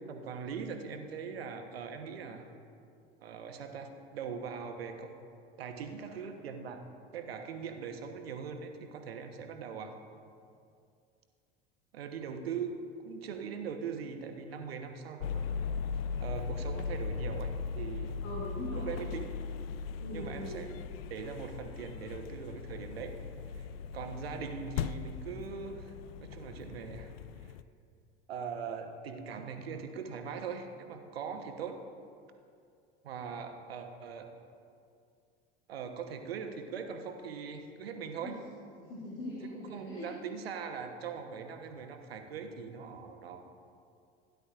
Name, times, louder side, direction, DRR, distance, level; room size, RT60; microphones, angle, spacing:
voice 1, 0.1-2.5 3.2-5.1 5.6-6.8 7.1-9.9 11.9-15.4 16.2-18.2 18.8-19.3 20.1-20.7 21.1-23.1 23.5-23.7 23.9-25.9 26.2-27.1 27.4-27.5 28.3-31.8 33.0-34.3 35.7-38.4 39.5-43.5, right 6 dB, 75° right, 5 dB, 1.1 m, -41 dB
sound 1, 15.2-27.6, left 5 dB, 70° left, 0.4 m, -38 dB
voice 2, 18.2-19.0 20.0-20.7 38.2-38.3 38.8-40.1, left 1 dB, 50° left, -6 dB, 2.5 m, -41 dB
16.5 x 10.5 x 2.5 m, 2.4 s
figure-of-eight pair, 75°, 30 cm